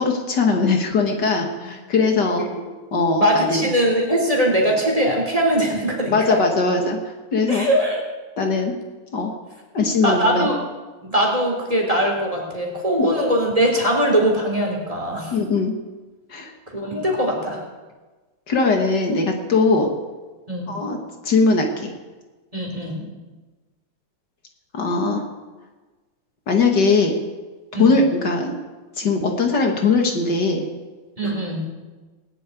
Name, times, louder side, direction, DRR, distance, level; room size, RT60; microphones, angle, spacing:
voice 1, 0.0-2.5 2.9-3.6 6.1-7.0 7.3-7.7 8.4-8.7 9.1-9.3 9.7-10.5 13.0-13.1 15.3-15.7 16.3-16.5 18.5-19.9 20.7-21.0 21.2-21.9 24.7-25.2 26.5-27.2 27.8-28.6 29.0-30.6, left 3 dB, 65° left, 3 dB, 2.3 m, -20 dB
voice 2, 3.2-6.4 7.5-8.0 10.0-10.6 11.0-15.3 16.7-17.6 20.5-20.8 22.5-23.1 27.7-27.9 31.2-31.7, equal, 20° right, 0 dB, 3.5 m, -21 dB
19.5 x 7.7 x 9.2 m, 1.3 s
omnidirectional pair, 2.1 m